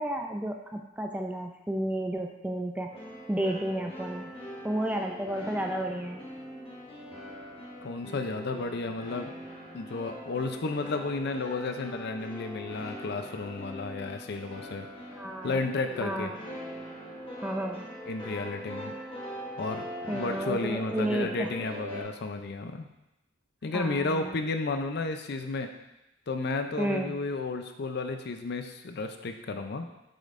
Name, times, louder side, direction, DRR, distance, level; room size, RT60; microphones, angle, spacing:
voice 1, 0.0-2.9 3.3-4.3 4.6-6.3 15.1-15.6 16.0-16.4 17.4-17.9 20.1-21.5 23.7-24.4 26.8-27.1, right 1 dB, 5° right, 3 dB, 0.3 m, -32 dB
sound 1, 2.9-22.0, equal, 25° left, 1.2 m, -42 dB
voice 2, 7.8-9.3 9.7-14.9 15.4-16.3 18.1-18.9 19.6-22.9 23.6-25.7 26.3-29.9, left 3 dB, 55° left, 7 dB, 0.5 m, -32 dB
7.6 x 5.2 x 2.5 m, 0.93 s
head